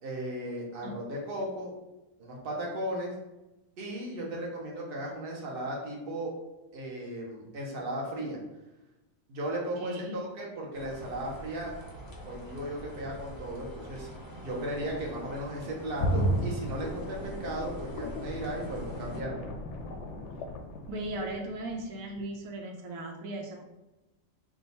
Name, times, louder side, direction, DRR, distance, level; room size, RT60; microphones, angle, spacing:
voice 1, 0.0-1.7 2.2-3.1 3.8-6.3 6.7-8.4 9.3-11.7 12.2-14.1 14.4-19.4, right 1 dB, 50° right, -2 dB, 1.1 m, -36 dB
voice 2, 9.8-10.2 14.3-14.4 20.9-23.6, right 1 dB, 85° right, 2 dB, 1.0 m, -37 dB
sound 1, 10.7-19.2, equal, 25° left, 0.5 m, -45 dB
sound 2, 16.0-21.8 22.2-22.3, equal, 70° left, 0.8 m, -34 dB
3.7 x 2.4 x 4.0 m, 0.99 s
omnidirectional pair, 1.4 m